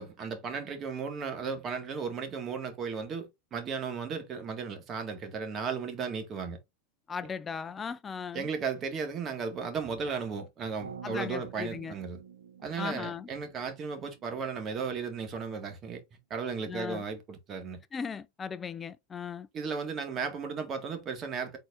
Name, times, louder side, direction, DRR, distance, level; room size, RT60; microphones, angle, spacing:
voice 1, 0.0-6.6 8.3-12.2 12.6-16.0 16.3-17.8 19.5-21.6, right 5 dB, 35° right, 1.8 m, -35 dB
voice 2, 7.1-8.5 11.0-11.9 12.8-13.3 16.6-17.0 17.9-19.5, left 6 dB, 20° left, 0.4 m, -37 dB
sound 1, 10.8-14.9, right 7 dB, 80° right, 0.7 m, -48 dB
4.7 x 4.1 x 2.5 m
hypercardioid pair, 105°, 0 cm